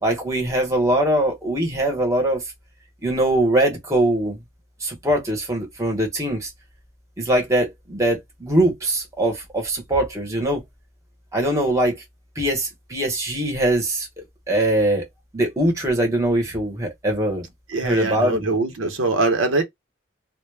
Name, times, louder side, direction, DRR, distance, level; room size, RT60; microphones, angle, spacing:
voice 1, 0.0-2.4 3.0-4.4 4.8-6.5 7.2-10.6 11.3-12.0 12.4-14.1 14.5-15.1 15.3-17.5 17.8-18.4, right 1 dB, 15° right, 0.8 m, -22 dB
voice 2, 17.7-19.6, right 3 dB, 90° right, 0.7 m, -22 dB
2.2 x 2.0 x 3.1 m
head